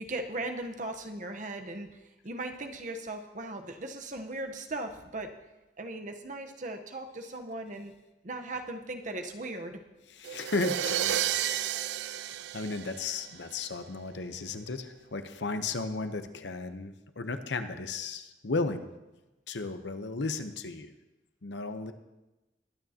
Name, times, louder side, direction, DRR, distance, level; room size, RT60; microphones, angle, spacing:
voice 1, 0.0-5.3 5.8-7.9 8.2-9.8, right 2 dB, 45° right, 5 dB, 0.9 m, -38 dB
voice 2, 10.2-18.9 19.5-20.9 21.4-21.9, left 3 dB, 75° left, 9 dB, 0.8 m, -35 dB
sound 1, 10.2-13.5, right 11 dB, 70° right, 0.3 m, -32 dB
21.5 x 9.2 x 2.8 m, 1.0 s
head